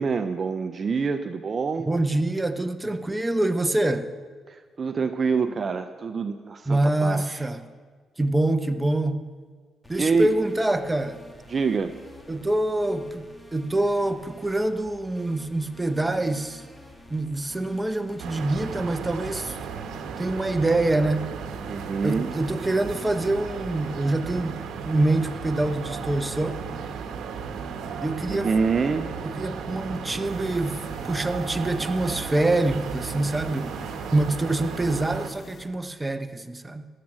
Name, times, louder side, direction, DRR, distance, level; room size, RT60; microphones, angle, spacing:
voice 1, 0.0-1.9 4.5-7.5 10.0-10.3 11.5-11.9 21.7-22.3 28.3-29.1, right 5 dB, 40° right, 9 dB, 0.6 m, -26 dB
voice 2, 1.8-4.1 6.7-7.6 8.2-9.2 9.9-11.2 12.3-16.7 17.1-19.6 20.2-21.4 22.0-26.8 28.0-28.5 29.2-33.7 34.1-36.9, right 2 dB, 15° right, 9 dB, 0.8 m, -25 dB
sound 1, 9.8-19.2, left 1 dB, 10° left, 1.7 m, -49 dB
sound 2, 18.2-35.3, right 6 dB, 75° right, 1.1 m, -35 dB
sound 3, 30.2-35.7, left 3 dB, 50° left, 1.4 m, -49 dB
18.0 x 7.5 x 6.1 m, 1.5 s
cardioid pair, 90°, 0 cm